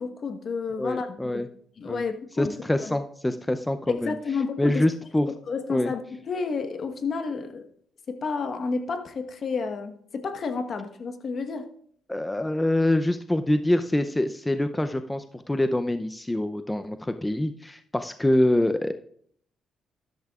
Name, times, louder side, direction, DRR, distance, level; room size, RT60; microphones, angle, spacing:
voice 1, 0.0-1.4 1.8-2.5 2.8-3.0 3.9-4.8 5.5-7.6 8.1-11.7, left 4 dB, 50° left, 7 dB, 1.2 m, -31 dB
voice 2, 0.8-1.5 1.8-2.0 2.4-4.1 4.6-5.3 5.7-5.9 12.1-18.9, left 1 dB, 10° left, 9 dB, 0.5 m, -25 dB
13.5 x 12.0 x 2.4 m, 0.62 s
cardioid pair, 90°, 0 cm